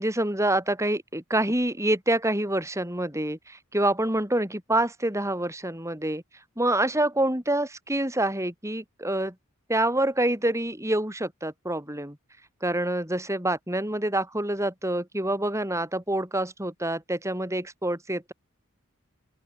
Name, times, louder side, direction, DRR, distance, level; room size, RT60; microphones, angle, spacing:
voice 1, 0.0-6.2 6.6-9.3 9.7-12.2 12.6-18.3, right 1 dB, 15° right, 7.8 m, -26 dB
open air
head